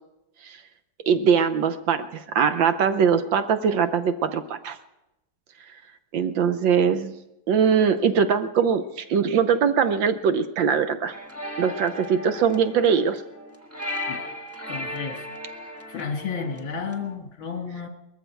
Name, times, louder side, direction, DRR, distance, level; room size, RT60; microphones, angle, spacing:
voice 1, 1.1-4.8 6.1-7.1 7.5-8.8 9.1-11.1 11.6-13.2, right 7 dB, 65° right, 10 dB, 1.5 m, -21 dB
sound 1, 11.1-17.2, left 1 dB, 10° right, 1.3 m, -36 dB
voice 2, 14.7-17.9, left 5 dB, 70° left, 4 dB, 2.7 m, -33 dB
20.5 x 14.5 x 4.5 m, 0.91 s
omnidirectional pair, 2.3 m